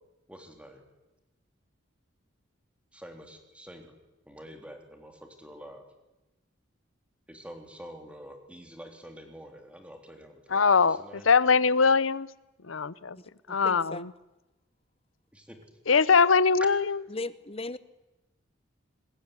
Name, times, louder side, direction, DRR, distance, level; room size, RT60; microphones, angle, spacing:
voice 1, 0.3-0.8 2.9-3.9 4.3-5.8 7.3-11.2 15.3-15.6, equal, 5° right, 3.6 m, -47 dB
voice 2, 10.5-12.3 12.6-13.2 13.5-14.1 15.9-17.1, left 5 dB, 85° left, 0.9 m, -22 dB
voice 3, 13.2-14.1 17.1-17.8, left 2 dB, 30° left, 1.0 m, -38 dB
26.0 x 21.0 x 9.9 m
head